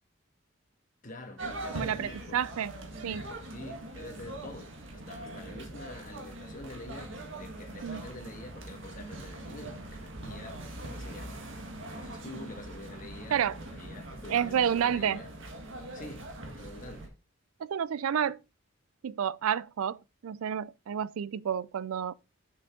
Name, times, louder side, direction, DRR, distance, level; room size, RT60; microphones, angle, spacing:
voice 1, 1.0-2.4 3.4-15.3 15.9-17.1 18.1-18.3, left 2 dB, 40° left, 1.5 m, -47 dB
sound 1, 1.4-17.1, right 1 dB, 65° right, 1.7 m, -42 dB
voice 2, 1.7-2.7 3.0-3.2 7.8-8.1 13.3-13.6 14.3-15.2 17.6-18.4 19.0-22.1, right 8 dB, 90° right, 0.4 m, -30 dB
7.1 x 6.2 x 3.6 m
head